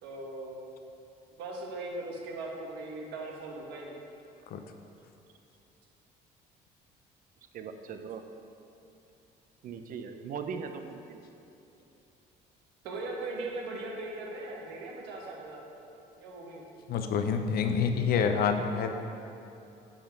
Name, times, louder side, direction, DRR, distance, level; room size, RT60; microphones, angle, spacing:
voice 1, 0.0-0.6 1.4-4.0 12.8-15.7 16.2-16.7, right 2 dB, 85° right, -1 dB, 1.4 m, -39 dB
voice 2, 7.5-8.2 9.6-11.2, right 6 dB, 55° right, 7 dB, 0.6 m, -39 dB
voice 3, 16.9-18.9, left 6 dB, 65° left, 6 dB, 0.6 m, -27 dB
9.0 x 4.3 x 5.3 m, 2.8 s
cardioid pair, 110°, 17 cm